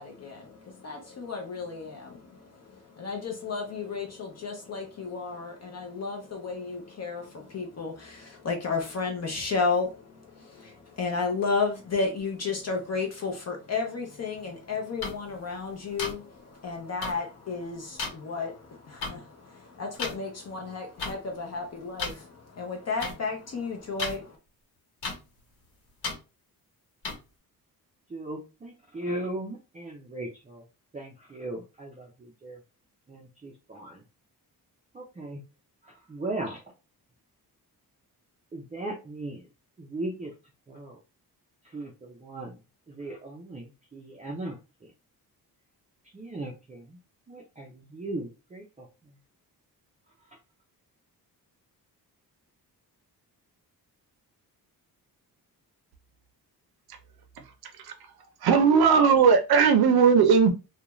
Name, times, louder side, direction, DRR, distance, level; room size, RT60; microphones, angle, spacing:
voice 1, 0.0-24.4, left 4 dB, 45° left, 0.6 m, -33 dB
sound 1, 15.0-15.1 16.0-16.1 17.0-17.1 18.0-18.1 19.0-19.1 20.0-20.1 21.0-21.1 22.0-22.1 23.0-23.1 24.0-24.2 25.0-25.1 26.0-26.1 27.0-27.1, left 4 dB, 85° left, 1.1 m, -31 dB
voice 2, 28.1-30.6 30.9-32.6 33.1-34.0 34.9-35.4 35.8-36.6 38.5-39.5 39.8-40.3 40.7-41.0 41.7-42.6 42.9-44.6 46.1-47.0 47.3-48.9, right 2 dB, 20° right, 0.4 m, -37 dB
voice 3, 58.4-60.5, right 6 dB, 75° right, 0.6 m, -18 dB
2.5 x 2.2 x 3.0 m
wide cardioid pair, 145°, 38 cm